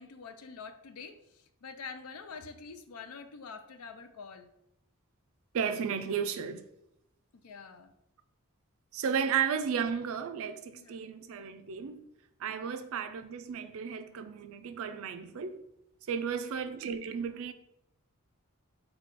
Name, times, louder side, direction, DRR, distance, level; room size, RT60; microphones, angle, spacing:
voice 1, 0.0-4.5 7.3-7.9 10.7-11.0 12.6-12.7 16.1-16.2, left 5 dB, 80° left, 0.5 m, -46 dB
voice 2, 5.5-6.6 8.9-12.0 12.4-15.6 16.1-17.5, right 7 dB, 65° right, 0.4 m, -33 dB
4.2 x 2.3 x 4.4 m
head